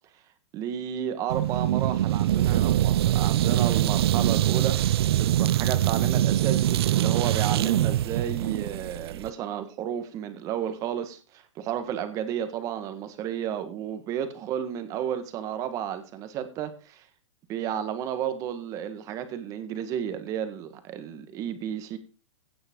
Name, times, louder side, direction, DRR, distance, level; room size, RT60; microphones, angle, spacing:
voice 1, 0.5-4.8 5.2-17.0 17.5-22.0, right 9 dB, 20° right, 10 dB, 1.5 m, -32 dB
sound 1, 1.3-9.3, right 13 dB, 55° right, 0.4 m, -23 dB
16.5 x 7.8 x 3.7 m, 0.34 s
supercardioid pair, 170°, 16 cm